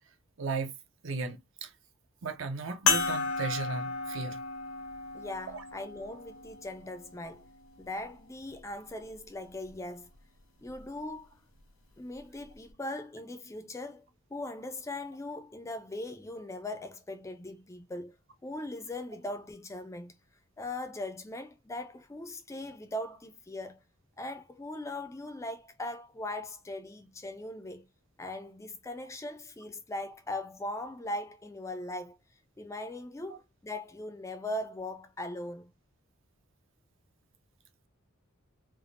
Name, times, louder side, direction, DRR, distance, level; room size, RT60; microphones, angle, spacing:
voice 1, 0.4-0.7 1.0-1.7 2.2-4.4 5.5-5.6 33.3-33.4, right 4 dB, 65° right, 0.6 m, -35 dB
sound 1, 2.9-7.7 8.4-8.5 10.7-10.8, left 4 dB, 90° left, 0.9 m, -33 dB
voice 2, 5.1-7.5 7.8-10.1 10.6-11.4 12.0-14.1 14.3-18.2 18.4-20.2 20.6-23.8 24.2-27.9 28.2-32.2 32.6-35.7, left 1 dB, 15° left, 0.3 m, -39 dB
3.3 x 2.1 x 2.4 m
head